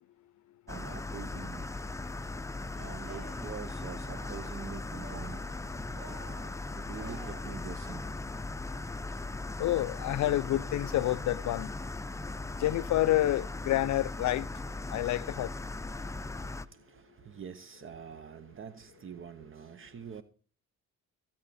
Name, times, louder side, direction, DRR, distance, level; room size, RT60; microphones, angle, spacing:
sound 1, 0.7-16.7, left 2 dB, 10° left, 0.6 m, -38 dB
voice 1, 0.7-1.7 2.8-5.4 6.7-8.1 14.3-14.4 14.8-15.1 15.7-20.2, right 7 dB, 45° right, 0.8 m, -45 dB
Cheering, 2.9-3.6 4.0-4.7 4.9-5.6 5.9-7.7, right 4 dB, 85° right, 4.9 m, -51 dB
voice 2, 9.6-11.7 12.6-14.5 14.9-15.5, left 14 dB, 70° left, 0.6 m, -28 dB
16.5 x 8.5 x 4.2 m
cardioid pair, 90°, 30 cm